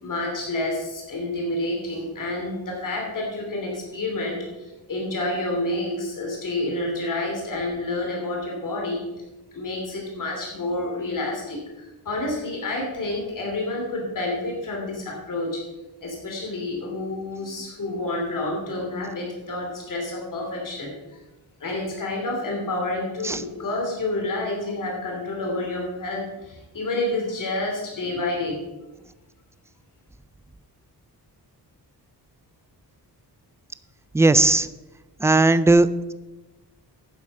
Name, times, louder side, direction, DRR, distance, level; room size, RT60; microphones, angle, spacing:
voice 1, 0.0-9.0 9.5-15.6 16.0-20.9 21.6-28.6, left 2 dB, 50° left, -1 dB, 3.2 m, -29 dB
voice 2, 34.1-34.7 35.2-35.9, right 2 dB, 10° right, 14 dB, 0.3 m, -16 dB
11.5 x 7.3 x 5.5 m, 1.0 s
wide cardioid pair, 140°, 40 cm